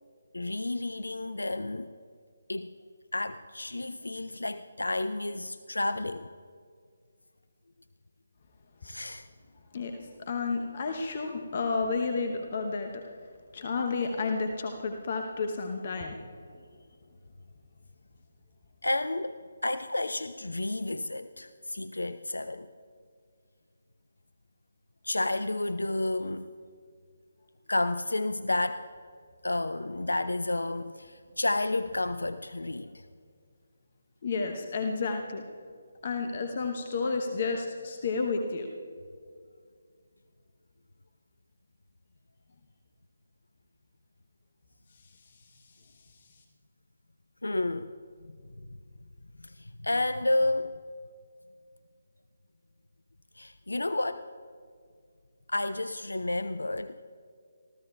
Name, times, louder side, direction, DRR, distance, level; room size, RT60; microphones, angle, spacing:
voice 1, 0.3-1.9 2.5-2.8 3.1-6.3 8.8-9.3 18.8-22.7 25.0-26.5 27.7-28.9 29.4-33.0 47.4-47.9 48.2-48.4 49.4-50.8 53.3-54.3 55.5-57.0, left 2 dB, 70° left, 0.4 m, -31 dB
voice 2, 9.7-13.0 13.5-16.2 34.2-35.4 36.0-38.7, left 4 dB, 40° left, 0.9 m, -31 dB
26.5 x 14.5 x 2.4 m
figure-of-eight pair, 145°, 0 cm